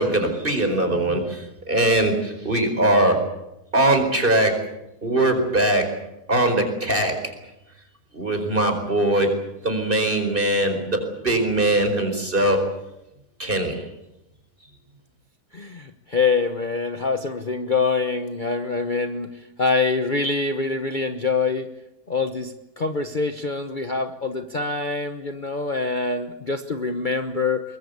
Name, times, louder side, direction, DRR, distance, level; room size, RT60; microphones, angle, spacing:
voice 1, 0.0-3.2 3.7-4.6 5.0-5.9 6.3-7.2 8.1-9.3 9.6-12.6 13.4-13.8, right 1 dB, 35° right, 6 dB, 4.9 m, -21 dB
voice 2, 15.5-19.3 19.6-21.7 22.1-27.6, left 4 dB, 35° left, 7 dB, 1.2 m, -25 dB
23.5 x 21.0 x 8.1 m, 0.91 s
omnidirectional pair, 1.6 m